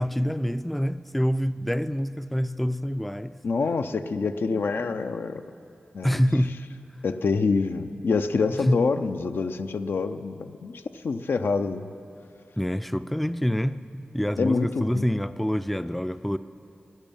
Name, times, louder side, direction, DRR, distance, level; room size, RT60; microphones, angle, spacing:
voice 1, 0.0-3.3 6.0-6.6 8.5-8.8 12.6-16.4, equal, 5° left, 0.3 m, -26 dB
voice 2, 3.4-5.4 5.9-6.2 7.0-11.9 14.4-15.1, left 4 dB, 80° left, 0.5 m, -26 dB
12.0 x 10.5 x 8.9 m
wide cardioid pair, 70°, 4 cm